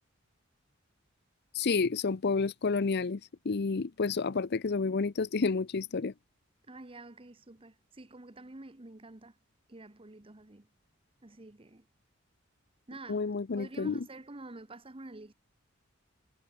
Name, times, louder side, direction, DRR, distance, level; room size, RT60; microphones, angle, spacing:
voice 1, 1.5-6.1 13.1-14.1, left 4 dB, 55° left, 0.6 m, -30 dB
voice 2, 6.7-9.3 9.7-10.7 11.2-11.8 12.9-13.2 13.5-15.3, right 2 dB, 25° right, 1.1 m, -48 dB
head